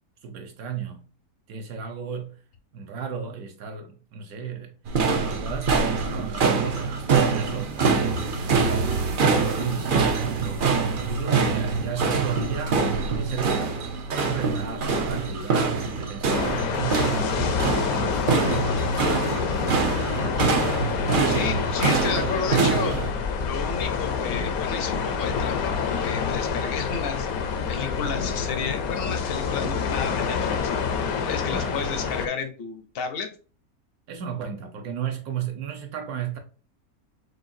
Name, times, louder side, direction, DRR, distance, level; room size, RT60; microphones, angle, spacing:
voice 1, 0.2-1.1 1.5-2.4 2.7-4.8 5.3-8.9 9.2-10.7 11.0-13.7 14.2-20.5 31.5-32.2 34.1-36.4, right 7 dB, 75° right, 1.1 m, -35 dB
sound 1, 4.9-23.1, right 4 dB, 60° right, 0.5 m, -24 dB
sound 2, 16.3-32.3, left 6 dB, 75° left, 1.1 m, -27 dB
voice 2, 21.2-23.0 23.4-27.3 27.7-30.7 31.2-33.3, left 6 dB, 55° left, 0.7 m, -32 dB
6.4 x 2.3 x 2.6 m
omnidirectional pair, 1.6 m